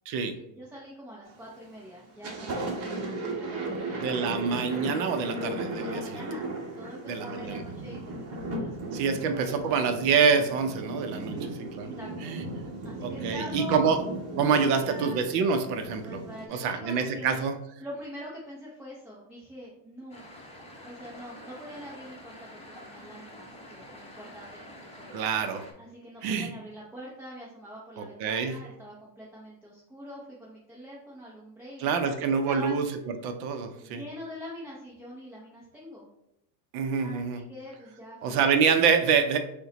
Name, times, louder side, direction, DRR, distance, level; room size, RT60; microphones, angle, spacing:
voice 1, 0.5-2.8 3.0-4.3 5.8-8.8 9.1-9.7 11.1-11.5 11.8-12.3 12.8-13.9 14.3-15.2 16.0-17.4 17.8-20.2 20.8-25.2 25.8-32.7 33.7-36.1 37.0-38.4, equal, 5° right, -6 dB, 0.4 m, -44 dB
Thunder, 1.3-1.7 2.0-16.5, right 2 dB, 30° right, 0.9 m, -36 dB
voice 2, 4.0-6.3 7.1-7.6 8.9-11.4 11.7-11.9 12.2-12.4 13.0-14.0 14.4-16.2 16.5-17.5 25.1-25.7 26.2-26.5 28.0-28.5 31.8-32.9 33.2-34.0 36.7-37.4 38.2-39.4, right 6 dB, 50° right, 7 dB, 0.6 m, -26 dB
sound 1, 20.1-25.7, left 1 dB, 10° left, 0.9 m, -47 dB
5.4 x 2.2 x 3.8 m, 0.83 s
supercardioid pair, 120°, 49 cm